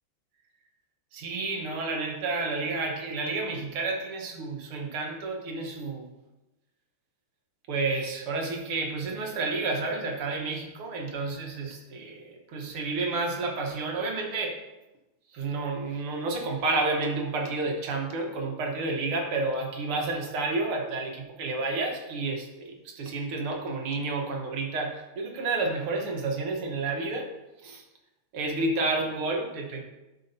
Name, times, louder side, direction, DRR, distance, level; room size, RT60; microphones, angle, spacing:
voice 1, 1.1-6.1 7.7-14.6 15.3-27.3 27.6-27.8 28.3-29.8, right 3 dB, 90° right, 2 dB, 2.2 m, -30 dB
12.0 x 6.3 x 2.8 m, 1.0 s
omnidirectional pair, 2.3 m